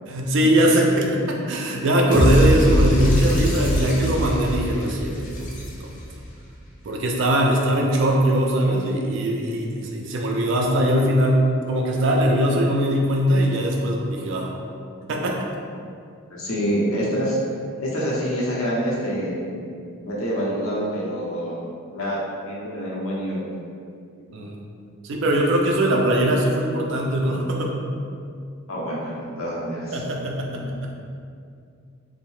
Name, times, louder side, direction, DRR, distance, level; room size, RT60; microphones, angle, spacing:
voice 1, 0.1-5.5 5.8-5.9 6.8-14.5 15.1-15.5 24.3-24.6 25.0-27.8 29.9-30.9, right 1 dB, 60° right, 0 dB, 0.4 m, -21 dB
voice 2, 0.9-1.2 16.3-17.4 17.8-19.5 20.0-21.6 21.9-22.2 22.4-23.5 24.2-24.3 25.8-26.1 28.7-30.0 30.5-30.8, equal, 75° left, -5 dB, 0.6 m, -27 dB
sound 1, 2.1-6.2, equal, 35° left, 0.5 m, -22 dB
2.7 x 2.0 x 3.1 m, 2.3 s
head